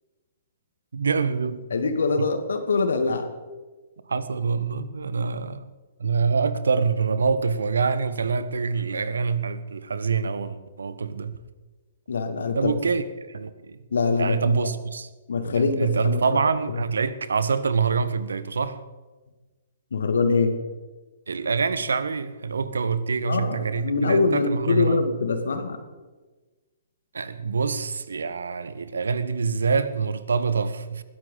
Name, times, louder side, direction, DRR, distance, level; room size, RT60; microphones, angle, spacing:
voice 1, 0.9-1.6 2.2-2.3 4.1-5.7 6.0-11.4 12.5-13.8 14.2-15.1 15.5-18.8 21.3-25.0 27.1-31.0, right 5 dB, 65° right, 1.1 m, -25 dB
voice 2, 1.7-3.3 12.1-12.7 13.9-14.7 15.3-16.4 16.7-16.8 19.9-20.6 23.3-25.8, left 4 dB, 65° left, 2.1 m, -24 dB
21.0 x 16.0 x 4.0 m
figure-of-eight pair, 120°, 0 cm